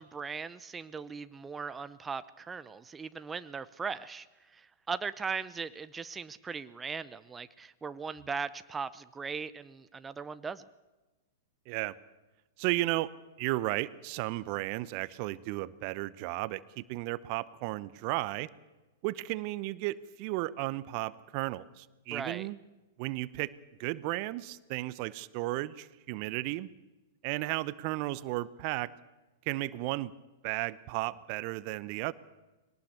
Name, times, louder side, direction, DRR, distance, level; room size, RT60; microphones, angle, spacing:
voice 1, 0.0-4.3 4.5-10.6 22.1-22.5, right 5 dB, 15° right, 14 dB, 0.7 m, -39 dB
voice 2, 11.7-12.0 12.6-13.1 13.4-18.5 19.0-22.6 23.0-23.5 23.8-26.7 27.2-28.9 29.4-30.1 30.4-32.1, right 18 dB, 45° right, 19 dB, 0.8 m, -34 dB
21.5 x 18.5 x 6.9 m, 1.1 s
figure-of-eight pair, 100°, 0 cm